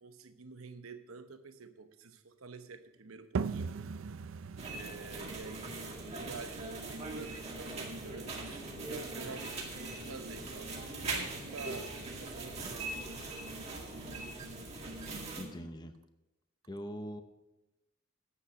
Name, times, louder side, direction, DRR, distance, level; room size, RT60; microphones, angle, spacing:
voice 1, 0.0-3.8 4.7-10.8 11.0-12.9, right 4 dB, 85° right, 0.9 m, -48 dB
sound 1, 3.4-8.8, right 5 dB, 70° right, 0.4 m, -41 dB
sound 2, 4.6-15.4, right 3 dB, 30° right, 2.0 m, -41 dB
sound 3, 6.5-15.7, equal, 50° right, 1.7 m, -51 dB
voice 2, 15.4-16.0 16.7-17.2, equal, 20° left, 0.7 m, -42 dB
9.9 x 8.4 x 6.2 m
head